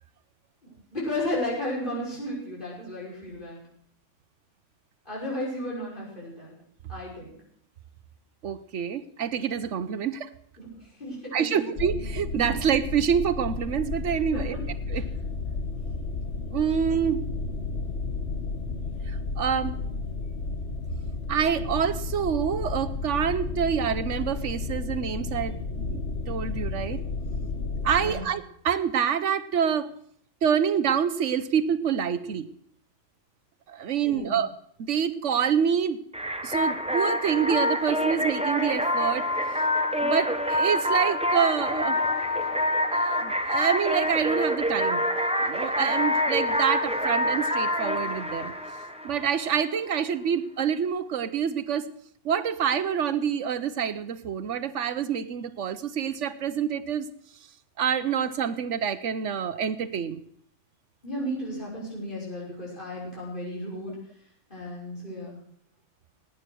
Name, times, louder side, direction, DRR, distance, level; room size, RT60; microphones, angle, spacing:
voice 1, 0.6-3.6 5.0-6.6 6.9-7.4 10.6-11.6 14.3-14.6 14.9-15.0 28.0-28.3 34.0-34.4 61.0-64.0 64.5-65.4, left 1 dB, 45° left, -5 dB, 6.4 m, -34 dB
voice 2, 8.4-10.3 11.3-14.6 14.9-15.0 16.5-17.2 19.1-19.7 21.3-26.0 26.3-27.0 27.8-29.9 30.4-32.5 33.7-34.5 34.8-36.0 36.4-39.3 39.9-42.0 42.9-45.0 45.4-48.5 49.0-51.9 52.2-57.1 57.8-60.2, right 8 dB, 75° right, 13 dB, 1.2 m, -27 dB
sound 1, 11.8-28.1, left 3 dB, 65° left, 1.7 m, -32 dB
sound 2, 36.1-49.6, left 1 dB, 5° right, 0.9 m, -26 dB
19.0 x 9.2 x 6.2 m, 0.63 s
omnidirectional pair, 1.3 m